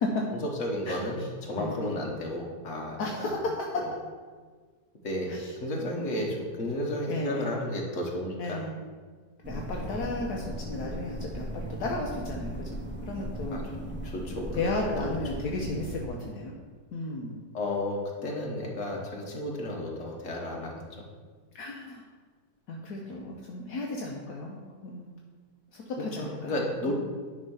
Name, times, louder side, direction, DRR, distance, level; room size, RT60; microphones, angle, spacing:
voice 1, 0.4-3.3 5.0-8.6 9.8-10.0 13.5-13.6 14.0-14.6 15.0-15.1 17.5-21.1 23.1-23.2 26.2-26.9, left 1 dB, 50° left, -1 dB, 1.6 m, -33 dB
voice 2, 1.6-2.0 3.0-3.4 5.3-5.5 6.0-6.2 7.1-7.5 8.4-8.8 9.5-13.6 14.5-16.6 16.9-17.4 21.5-22.0 22.7-25.1 25.7-26.6 26.9-27.0, left 2 dB, 70° left, -1 dB, 1.3 m, -34 dB
sound 1, 9.4-16.1, right 1 dB, 10° right, 0.5 m, -37 dB
9.9 x 3.7 x 5.5 m, 1.5 s
omnidirectional pair, 1.8 m